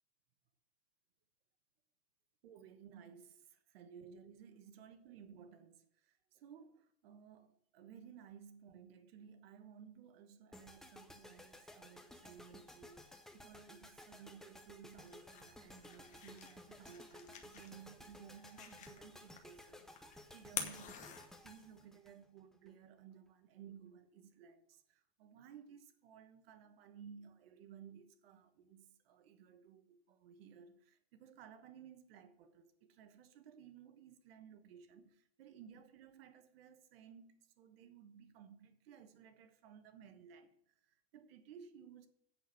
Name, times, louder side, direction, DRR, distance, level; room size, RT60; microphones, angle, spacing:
voice 1, 2.4-42.1, right 7 dB, 65° right, 1.3 m, -58 dB
sound 1, 10.5-22.7, left 1 dB, ahead, 0.7 m, -57 dB
sound 2, 14.9-21.8, left 8 dB, 25° left, 1.2 m, -49 dB
8.4 x 6.1 x 7.7 m
supercardioid pair, 155°, 32 cm